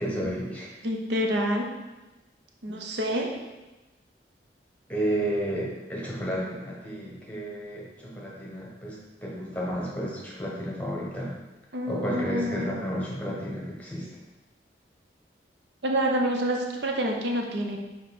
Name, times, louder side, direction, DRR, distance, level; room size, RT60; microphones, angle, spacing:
voice 1, 0.0-0.7 4.9-11.3 11.9-14.1, equal, 10° left, -4 dB, 1.2 m, -32 dB
voice 2, 0.8-1.7 2.6-3.3 11.7-12.8 15.8-17.8, equal, 75° right, 1 dB, 0.8 m, -27 dB
5.3 x 4.5 x 4.2 m, 1.1 s
head